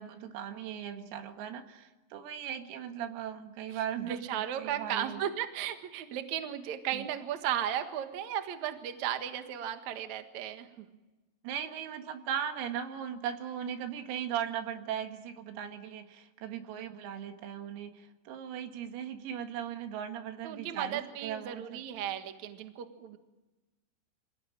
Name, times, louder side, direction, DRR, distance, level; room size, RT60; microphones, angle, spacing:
voice 1, 0.0-4.2 4.6-5.2 6.9-7.1 11.4-21.8, right 9 dB, 90° right, 6 dB, 4.6 m, -38 dB
voice 2, 3.7-10.9 20.4-23.2, right 10 dB, 70° right, 7 dB, 1.8 m, -35 dB
26.0 x 18.0 x 8.9 m, 1.1 s
omnidirectional pair, 6.0 m